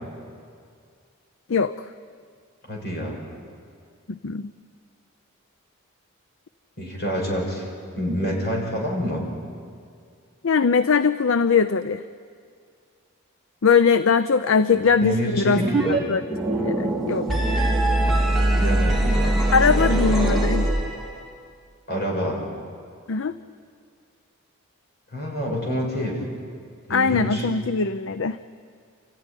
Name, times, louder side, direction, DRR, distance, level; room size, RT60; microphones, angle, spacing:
voice 1, 2.6-3.2 6.8-9.2 14.7-15.9 18.5-20.3 21.9-22.4 25.1-26.2 26.9-27.5, equal, 45° left, 0 dB, 6.0 m, -27 dB
voice 2, 4.1-4.5 10.4-12.0 13.6-16.2 16.6-17.3 19.5-20.7 23.1-23.3 26.9-28.4, left 5 dB, 65° left, 12 dB, 0.5 m, -21 dB
sound 1, 15.6-16.0 16.2-21.2, right 1 dB, ahead, 3.9 m, -22 dB
29.5 x 15.0 x 9.9 m, 2.2 s
head